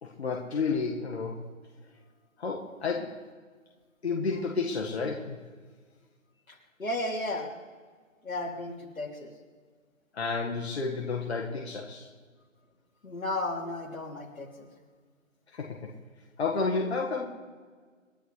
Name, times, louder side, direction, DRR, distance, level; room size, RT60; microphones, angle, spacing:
voice 1, 0.0-1.4 2.4-3.2 4.0-5.4 10.1-12.1 15.5-15.9 16.4-17.2, left 4 dB, 50° left, 0 dB, 1.7 m, -31 dB
voice 2, 6.5-7.5 8.2-9.3 13.0-14.7, left 1 dB, 85° left, 1 dB, 3.1 m, -34 dB
28.0 x 11.0 x 3.3 m, 1.5 s
figure-of-eight pair, 160°, 40 cm